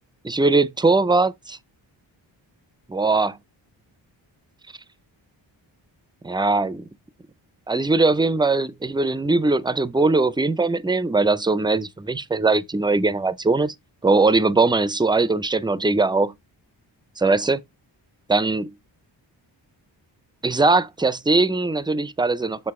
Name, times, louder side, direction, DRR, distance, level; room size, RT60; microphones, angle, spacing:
voice 1, 0.2-1.6 2.9-3.4 6.2-6.9 7.7-13.7 14.0-16.3 17.2-17.6 18.3-18.7 20.4-22.7, right 3 dB, 10° right, 0.5 m, -20 dB
6.8 x 3.8 x 3.6 m
cardioid pair, 60°, 46 cm